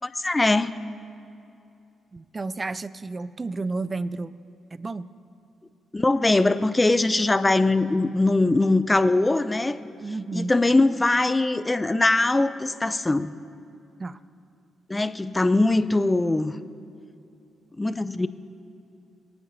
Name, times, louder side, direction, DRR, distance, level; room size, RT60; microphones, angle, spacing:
voice 1, 0.0-0.7 5.9-9.8 10.3-13.3 14.9-16.5 17.8-18.3, left 2 dB, 20° left, 13 dB, 0.6 m, -21 dB
voice 2, 2.1-4.3 4.7-5.1 10.0-10.5 14.0-14.2, right 3 dB, 35° right, 17 dB, 0.4 m, -31 dB
26.0 x 9.6 x 2.7 m, 2.7 s
hypercardioid pair, 40°, 0 cm